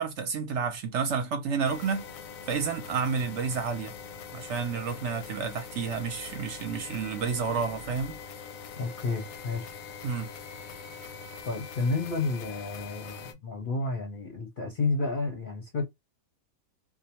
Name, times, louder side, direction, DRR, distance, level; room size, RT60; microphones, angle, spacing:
voice 1, 0.0-2.1 2.5-3.9 4.3-8.2 10.0-10.3, right 6 dB, 65° right, 0.8 m, -30 dB
sound 1, 1.6-13.3, left 6 dB, 85° left, 1.0 m, -43 dB
voice 2, 8.8-9.7 11.5-15.9, left 3 dB, 50° left, 0.7 m, -31 dB
2.5 x 2.1 x 2.8 m
omnidirectional pair, 1.4 m